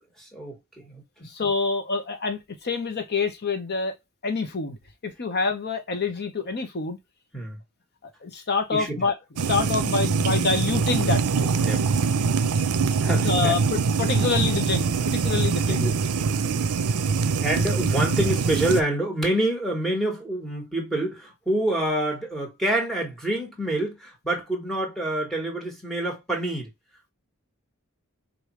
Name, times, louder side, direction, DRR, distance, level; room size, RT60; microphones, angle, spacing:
voice 1, 0.0-1.3 7.3-7.6 8.7-9.0 9.8-9.9 11.4-11.8 13.0-13.6 14.2-14.3 15.0-15.1 15.7-16.6 17.4-26.7, right 1 dB, ahead, 1.5 m, -27 dB
voice 2, 1.2-4.0 4.2-4.8 5.0-7.0 8.2-9.1 9.4-11.6 13.1-15.9, left 4 dB, 50° left, 0.9 m, -27 dB
sound 1, 9.4-18.8, right 5 dB, 80° right, 0.5 m, -23 dB
5.0 x 2.6 x 3.0 m
head